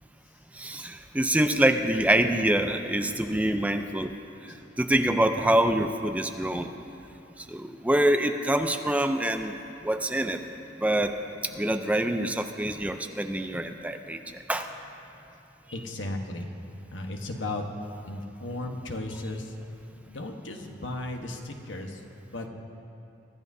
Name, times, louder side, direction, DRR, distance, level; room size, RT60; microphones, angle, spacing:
voice 1, 0.6-4.1 4.8-6.7 7.5-9.5 9.8-10.4 10.8-11.2 11.5-14.2 14.5-14.7, right 1 dB, 10° right, 6 dB, 0.5 m, -25 dB
voice 2, 15.7-16.5 16.9-17.7 18.1-19.6 20.1-22.0 22.3-22.5, left 2 dB, 85° left, 3 dB, 1.2 m, -35 dB
24.0 x 13.5 x 2.7 m, 2.7 s
head